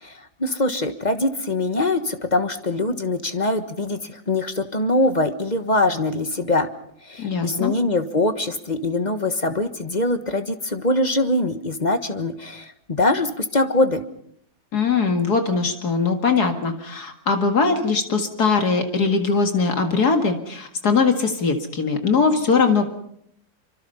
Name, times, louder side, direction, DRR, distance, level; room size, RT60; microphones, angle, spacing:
voice 1, 0.0-6.7 7.0-14.0, left 2 dB, 25° left, 9 dB, 1.3 m, -23 dB
voice 2, 7.2-7.7 14.7-22.8, left 4 dB, 55° left, 6 dB, 2.5 m, -21 dB
25.5 x 24.5 x 5.6 m, 0.69 s
omnidirectional pair, 2.0 m